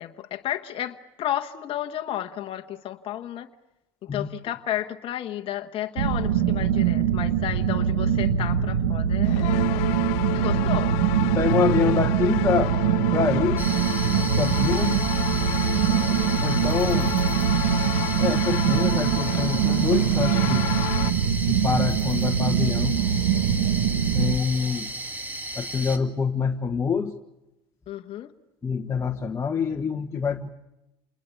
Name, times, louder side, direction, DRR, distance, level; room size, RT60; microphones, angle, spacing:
voice 1, 0.0-3.5 4.0-9.9 10.3-10.9 27.9-28.3, left 12 dB, 45° left, 5 dB, 1.2 m, -32 dB
sound 1, 6.0-24.4, right 8 dB, 85° right, 1.5 m, -23 dB
sound 2, 9.2-21.1, left 19 dB, 70° left, 1.0 m, -32 dB
voice 2, 11.2-12.7 13.1-13.6 14.4-15.0 16.4-17.1 18.2-20.6 21.5-22.9 24.1-24.9 25.5-27.1 28.6-30.5, left 6 dB, 20° left, 2 dB, 1.4 m, -26 dB
sound 3, 13.6-26.0, right 1 dB, 15° right, 2.2 m, -34 dB
27.5 x 20.5 x 8.3 m, 0.92 s
supercardioid pair, 95°, 13 cm